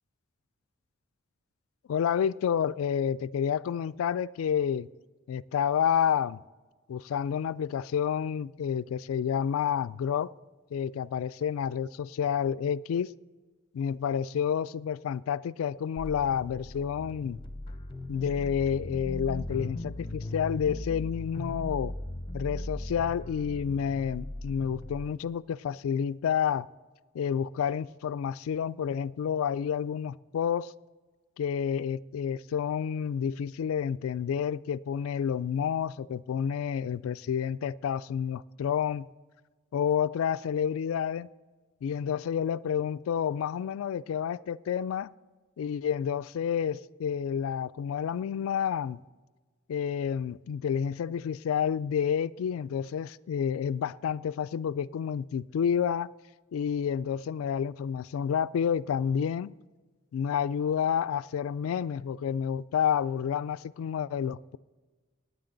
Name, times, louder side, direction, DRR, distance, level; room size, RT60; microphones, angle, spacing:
voice 1, 1.9-4.9 5.3-6.4 6.9-10.3 10.7-13.1 13.7-17.4 18.1-21.9 22.3-26.7 27.1-30.7 31.4-39.1 39.7-41.3 41.8-45.1 45.6-49.0 49.7-56.1 56.5-59.6 60.1-64.6, left 8 dB, 75° left, 0.3 m, -29 dB
sound 1, 16.0-25.1, left 1 dB, 25° left, 0.8 m, -38 dB
18.0 x 9.5 x 3.9 m
head